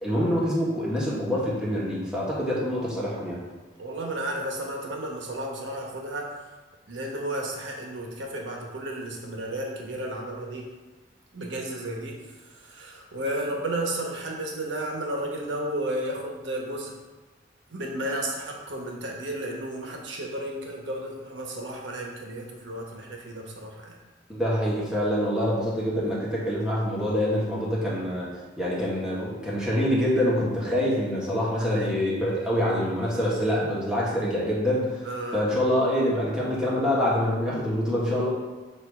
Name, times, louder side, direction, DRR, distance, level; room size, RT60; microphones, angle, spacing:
voice 1, 0.0-3.4 24.3-28.3 28.6-35.0 35.3-38.3, equal, 5° right, -7 dB, 1.6 m, -25 dB
voice 2, 3.8-6.3 6.9-10.7 11.3-16.9 17.7-23.9 31.6-31.9 35.0-35.4, right 1 dB, 80° right, 0 dB, 1.1 m, -33 dB
7.0 x 2.8 x 4.8 m, 1.3 s
head